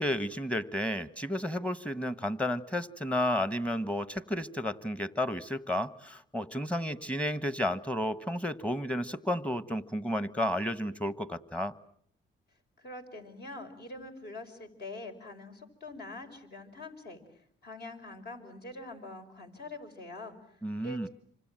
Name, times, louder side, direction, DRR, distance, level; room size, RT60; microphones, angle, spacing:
voice 1, 0.0-11.7 20.6-21.1, left 1 dB, 5° left, 14 dB, 1.3 m, -32 dB
voice 2, 12.8-21.1, left 2 dB, 55° left, 5 dB, 5.4 m, -45 dB
28.0 x 25.0 x 7.6 m, 0.64 s
cardioid pair, 90°, 20 cm